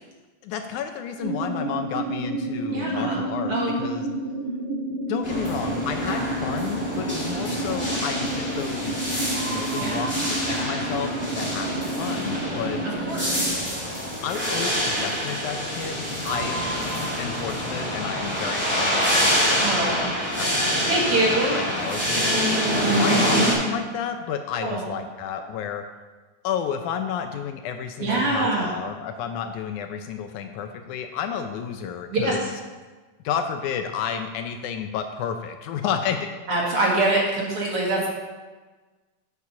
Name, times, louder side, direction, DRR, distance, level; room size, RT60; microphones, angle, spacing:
voice 1, 0.4-4.1 5.1-9.0 9.5-12.8 14.2-16.6 17.2-22.3 22.9-25.8 26.4-32.6 33.2-36.3, left 8 dB, 80° left, 6 dB, 1.9 m, -31 dB
sound 1, 1.2-13.5, right 2 dB, 75° right, 2.8 m, -30 dB
voice 2, 2.7-3.2 3.5-3.7 9.8-10.2 13.1-13.4 19.6-20.1 20.9-21.6 24.6-24.9 28.0-28.7 32.1-32.4 36.5-38.1, right 2 dB, 50° right, -3 dB, 2.4 m, -24 dB
sound 2, 5.2-23.5, equal, 5° right, 2.1 m, -26 dB
8.3 x 6.5 x 5.7 m, 1.3 s
omnidirectional pair, 3.7 m